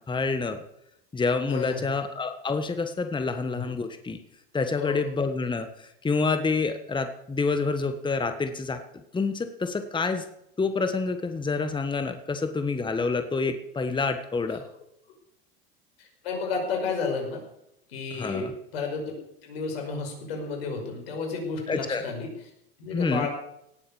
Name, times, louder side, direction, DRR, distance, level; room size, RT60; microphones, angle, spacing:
voice 1, 0.1-0.6 1.1-4.2 4.5-8.8 9.1-10.2 10.6-14.6 18.2-18.5 21.7-22.0 22.9-23.3, left 4 dB, 15° left, 8 dB, 1.4 m, -28 dB
voice 2, 1.5-1.9 3.5-3.6 4.8-5.0 14.5-14.6 16.0-17.4 17.9-22.3 22.8-23.3, left 4 dB, 80° left, 3 dB, 5.4 m, -32 dB
18.0 x 8.4 x 7.1 m, 0.78 s
hypercardioid pair, 90°, 30 cm